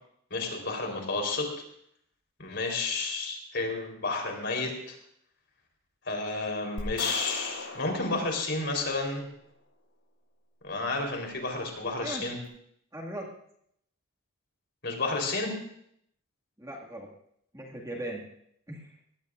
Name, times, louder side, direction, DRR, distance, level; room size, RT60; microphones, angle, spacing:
voice 1, 0.3-1.5 2.4-5.0 6.1-9.3 10.6-12.4 14.8-15.5, left 3 dB, 50° left, 2 dB, 4.0 m, -31 dB
sound 1, 6.8-9.2, left 3 dB, 85° left, 6.5 m, -39 dB
voice 2, 12.9-13.3 16.6-17.1 17.5-18.2 18.7-18.9, right 1 dB, 15° right, -2 dB, 2.1 m, -38 dB
22.0 x 17.5 x 2.6 m, 0.70 s
head